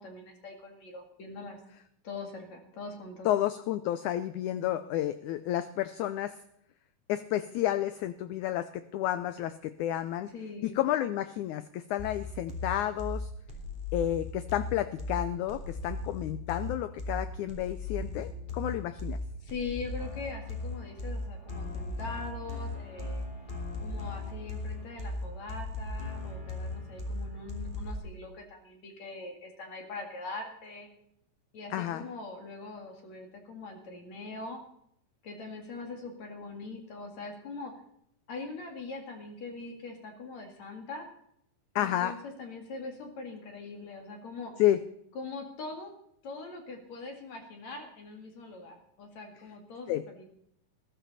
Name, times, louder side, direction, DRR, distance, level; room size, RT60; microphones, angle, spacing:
voice 1, 0.0-1.6 2.0-3.3 10.3-10.8 19.4-23.2 23.8-30.9 31.5-34.6 35.2-37.7 38.3-41.1 41.8-44.5 45.1-45.9 46.2-50.2, left 3 dB, 55° left, 4 dB, 3.2 m, -42 dB
voice 2, 3.3-6.4 7.1-10.3 10.6-13.3 13.9-19.2 31.7-32.1 41.8-42.2 44.6-44.8 49.9-50.0, left 12 dB, 80° left, 13 dB, 1.7 m, -31 dB
sound 1, 12.0-28.0, left 2 dB, 15° left, 2.3 m, -37 dB
20.5 x 12.5 x 4.2 m, 0.73 s
omnidirectional pair, 4.1 m